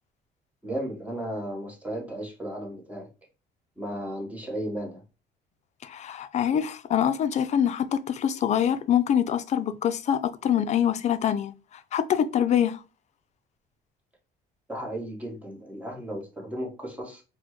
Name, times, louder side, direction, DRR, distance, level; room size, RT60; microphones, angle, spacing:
voice 1, 0.6-3.1 3.8-5.0 14.7-17.2, right 1 dB, 10° right, 1.1 m, -34 dB
voice 2, 5.8-11.5 11.9-12.8, left 9 dB, 45° left, 0.4 m, -25 dB
4.1 x 2.1 x 2.9 m
cardioid pair, 110°, 17 cm